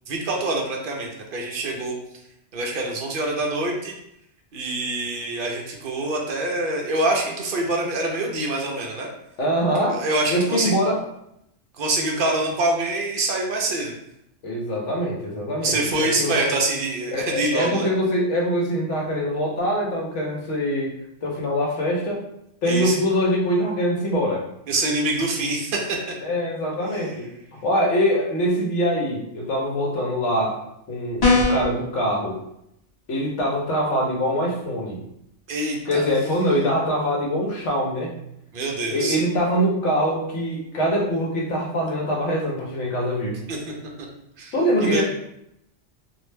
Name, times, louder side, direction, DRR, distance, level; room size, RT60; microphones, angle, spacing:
voice 1, 0.1-2.0 2.5-3.9 4.5-9.1 9.9-10.7 11.8-13.9 15.6-17.9 22.7-22.9 24.7-26.0 35.5-36.0 38.5-39.2 43.5-43.6 44.4-44.5 44.8-45.0, right 2 dB, 60° right, 0 dB, 0.6 m, -25 dB
voice 2, 9.4-10.0 10.3-11.0 14.4-16.3 17.1-22.2 22.6-24.4 26.2-30.6 30.9-32.4 33.1-35.0 35.9-38.1 38.9-43.4 44.5-45.0, equal, 75° left, -1 dB, 1.0 m, -23 dB
sound 1, 31.2-31.8, left 2 dB, 40° left, 0.6 m, -18 dB
2.5 x 2.0 x 3.1 m, 0.79 s
omnidirectional pair, 1.2 m